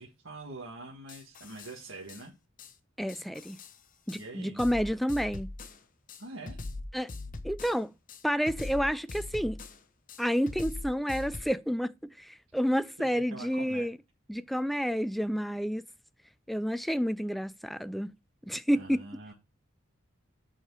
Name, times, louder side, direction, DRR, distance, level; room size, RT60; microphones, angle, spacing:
voice 1, 0.0-2.3 4.2-4.6 6.2-6.6 13.0-13.9 18.7-19.3, right 2 dB, 80° right, 1.8 m, -44 dB
sound 1, 1.1-1.7 2.1-2.2 2.6-2.7 3.1-3.7 4.1-4.2 4.6-5.8 6.1-7.8 8.1-9.8 10.1-11.4, left 2 dB, 40° left, 0.8 m, -41 dB
voice 2, 3.0-3.6 4.1-5.5 6.9-7.1 7.4-7.9 8.2-9.6 10.2-14.0 14.3-15.8 16.5-18.1 18.5-19.1, equal, ahead, 0.3 m, -30 dB
8.2 x 4.8 x 4.7 m
head